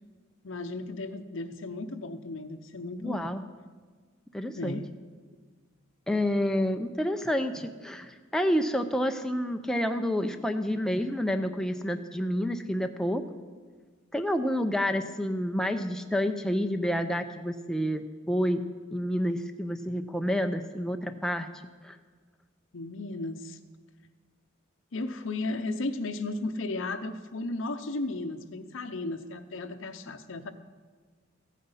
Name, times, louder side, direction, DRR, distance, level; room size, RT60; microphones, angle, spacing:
voice 1, 0.4-3.3 4.6-4.9 6.1-6.2 22.7-23.6 24.9-30.5, left 2 dB, 70° left, 6 dB, 0.7 m, -35 dB
voice 2, 3.0-3.4 4.3-4.8 6.1-13.2 14.1-18.6 18.9-21.5 21.8-22.0, equal, 5° left, 5 dB, 0.5 m, -29 dB
14.5 x 9.2 x 5.6 m, 1.5 s
head